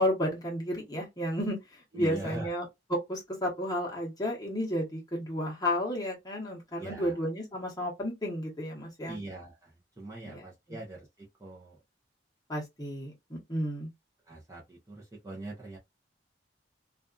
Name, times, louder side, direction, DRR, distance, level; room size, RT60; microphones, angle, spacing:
voice 1, 0.0-9.2 10.2-10.8 12.5-13.9, equal, 20° left, 1.0 m, -32 dB
voice 2, 1.9-2.5 6.7-7.2 9.1-11.8 14.3-15.8, right 2 dB, 15° right, 0.6 m, -42 dB
2.4 x 2.4 x 2.3 m
head